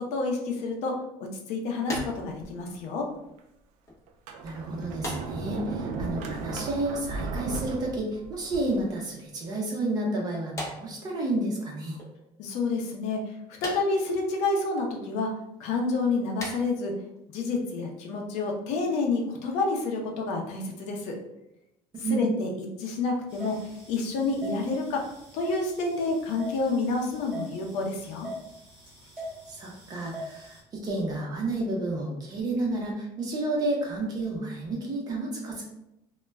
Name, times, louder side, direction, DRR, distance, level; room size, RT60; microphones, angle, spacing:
voice 1, 0.1-0.9 1.2-3.1 12.4-15.3 15.6-16.9 17.3-21.2 22.1-22.5 22.8-23.6 23.9-25.0 25.3-28.3, left 3 dB, 70° left, 1 dB, 0.6 m, -29 dB
sound 1, 1.9-3.6 3.9-4.2 5.0-6.0 6.2-7.4 7.7-8.1 9.0-9.6 10.4-11.7 12.0-12.1 13.6-14.4 15.0-15.1 15.5-15.9 16.3-16.7 16.9-17.2 17.4-17.6 18.3-18.4 18.8-18.9 19.1-19.2, left 1 dB, 25° left, 0.7 m, -40 dB
Sliding door, 1.9-2.8 3.4-3.5 4.1-8.9, right 3 dB, 80° right, 0.4 m, -35 dB
voice 2, 4.4-12.0 21.9-22.3 29.5-35.6, right 2 dB, 35° right, -1 dB, 0.6 m, -31 dB
sound 2, 23.3-30.6, equal, 15° right, 1.2 m, -42 dB
2.2 x 2.0 x 3.3 m, 0.83 s
cardioid pair, 155°, 12 cm